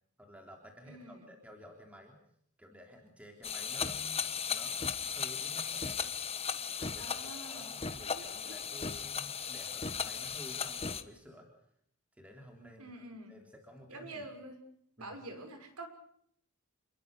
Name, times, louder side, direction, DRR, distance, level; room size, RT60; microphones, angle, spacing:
voice 1, 0.2-2.2 2.6-4.8 5.0-6.1 6.8-7.2 7.4-11.5 12.1-12.9 13.3-14.3 15.0-15.2, equal, 5° right, 2 dB, 3.5 m, -53 dB
voice 2, 0.9-1.3 7.0-7.7 8.1-8.5 12.8-13.4 13.9-14.6 15.0-15.9, right 2 dB, 75° right, 6 dB, 6.2 m, -47 dB
sound 1, 3.4-11.0, left 6 dB, 25° left, 1.4 m, -36 dB
28.5 x 21.5 x 6.8 m, 0.70 s
head